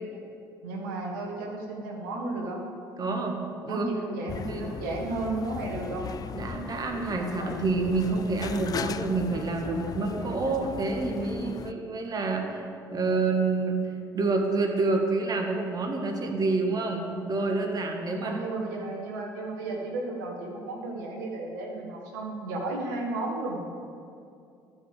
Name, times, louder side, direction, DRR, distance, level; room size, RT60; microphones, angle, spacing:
voice 1, 0.6-2.6 3.7-6.1 18.2-23.6, right 2 dB, 75° right, 0 dB, 1.6 m, -33 dB
voice 2, 3.0-3.4 3.6-3.8 4.5-4.7 6.3-12.6 12.9-13.8 14.1-18.4, right 3 dB, 40° right, 3 dB, 1.7 m, -28 dB
sound 1, 4.3-11.7, left 8 dB, 40° left, 0.4 m, -37 dB
12.5 x 5.3 x 7.6 m, 2.4 s
hypercardioid pair, 55°, 10 cm